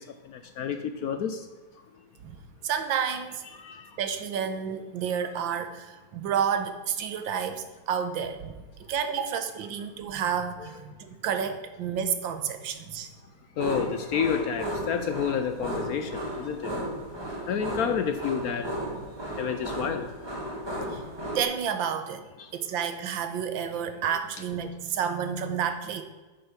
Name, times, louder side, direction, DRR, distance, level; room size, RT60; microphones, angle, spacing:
voice 1, 1.0-1.4 3.6-3.8 13.6-16.7 17.5-18.6 19.4-20.1, left 7 dB, 70° left, 8 dB, 0.9 m, -29 dB
voice 2, 2.6-3.4 4.0-8.5 8.9-13.1 20.9-21.0 21.3-22.3 22.5-26.0, right 7 dB, 85° right, 9 dB, 1.6 m, -30 dB
sound 1, 13.6-21.4, equal, 15° right, 1.6 m, -34 dB
9.4 x 6.9 x 5.0 m, 1.3 s
omnidirectional pair, 2.0 m